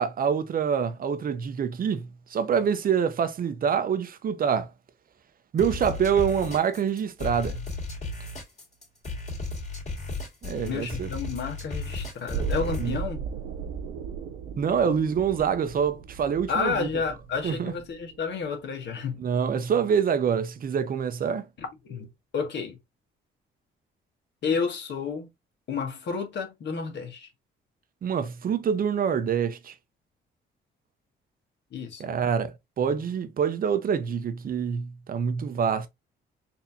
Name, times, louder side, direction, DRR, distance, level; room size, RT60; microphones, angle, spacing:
voice 1, 0.0-4.7 5.5-7.6 10.4-11.1 12.8-12.9 14.6-16.9 17.4-17.7 19.2-21.5 28.0-29.7 32.0-35.9, right 7 dB, 45° right, 0.7 m, -26 dB
sound 1, 5.6-13.0, left 3 dB, 35° left, 2.1 m, -34 dB
voice 2, 10.6-13.2 16.5-19.2 21.6-22.1 22.3-22.8 24.4-25.3 25.7-27.3 31.7-32.2, left 5 dB, 65° left, 1.4 m, -31 dB
sound 2, 12.3-18.3 18.6-18.7, right 6 dB, 90° right, 0.5 m, -36 dB
4.2 x 2.8 x 2.6 m
cardioid pair, 90°, 20 cm